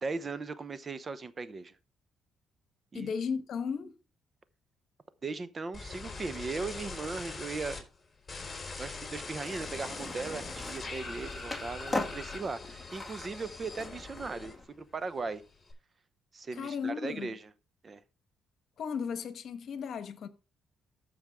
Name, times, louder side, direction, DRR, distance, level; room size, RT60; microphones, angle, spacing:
voice 1, 0.0-1.8 2.9-3.1 5.2-7.8 8.8-15.4 16.3-17.5 17.8-18.0, right 4 dB, 35° right, 0.8 m, -38 dB
voice 2, 2.9-3.9 16.5-17.3 18.8-20.3, left 6 dB, 65° left, 1.1 m, -35 dB
sound 1, 5.7-7.8 8.3-14.8 15.1-15.7, left 3 dB, 25° left, 3.5 m, -42 dB
Skateboard, 9.4-14.6, left 2 dB, 5° left, 2.2 m, -40 dB
13.5 x 5.2 x 3.6 m
cardioid pair, 90°, 0 cm